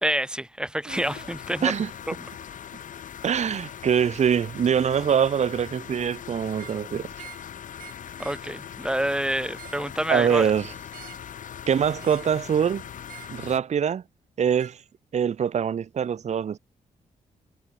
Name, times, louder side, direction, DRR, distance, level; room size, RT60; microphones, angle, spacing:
voice 1, 0.0-1.8 2.1-2.2 8.2-10.5, right 1 dB, 5° right, 1.8 m, -27 dB
sound 1, 0.9-13.6, left 9 dB, 65° left, 1.0 m, -41 dB
voice 2, 3.2-7.1 10.1-10.7 11.7-12.8 13.3-14.0 14.4-14.8 15.1-16.6, right 8 dB, 55° right, 0.8 m, -24 dB
sound 2, 6.5-6.8 7.1-7.5 7.8-8.5 9.4-9.9 10.9-11.3 12.0-12.4 13.0-13.4 14.6-14.8, right 11 dB, 85° right, 4.4 m, -47 dB
cardioid pair, 70°, 14 cm